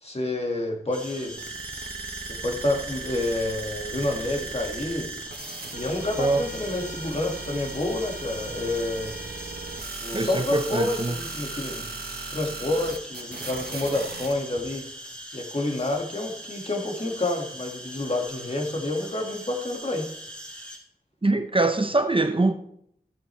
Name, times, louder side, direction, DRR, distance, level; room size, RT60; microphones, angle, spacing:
voice 1, 0.0-1.4 2.3-5.1 5.7-9.1 10.0-11.9 12.3-14.9 15.3-20.1, left 2 dB, 40° left, 2.1 m, -29 dB
sound 1, 0.9-20.8, equal, 10° left, 3.9 m, -41 dB
sound 2, 1.4-14.3, right 4 dB, 85° right, 1.2 m, -37 dB
voice 2, 10.1-11.2 21.2-22.5, right 2 dB, 35° right, 0.8 m, -23 dB
14.0 x 7.7 x 3.4 m
wide cardioid pair, 50°, 16 cm